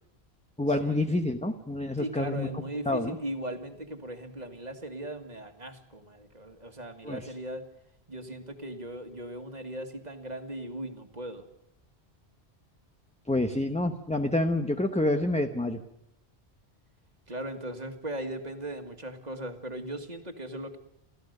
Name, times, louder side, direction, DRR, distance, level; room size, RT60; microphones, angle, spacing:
voice 1, 0.6-2.5 2.9-3.2 7.0-7.3 13.3-15.8, left 1 dB, 5° left, 6 dB, 0.8 m, -28 dB
voice 2, 2.0-7.6 8.1-11.4 17.3-20.8, right 1 dB, 40° right, 6 dB, 1.9 m, -38 dB
29.0 x 14.0 x 6.6 m, 0.84 s
omnidirectional pair, 1.1 m